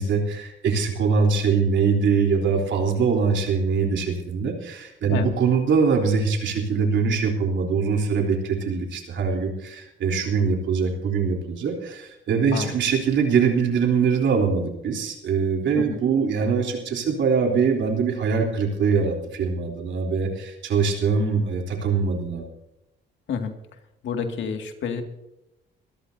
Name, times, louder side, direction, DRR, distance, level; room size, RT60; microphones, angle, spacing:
voice 1, 0.0-22.4, right 5 dB, 70° right, 2 dB, 3.7 m, -23 dB
voice 2, 24.0-25.0, left 6 dB, 75° left, 5 dB, 2.2 m, -29 dB
23.5 x 14.0 x 2.8 m, 0.90 s
cardioid pair, 90°, 20 cm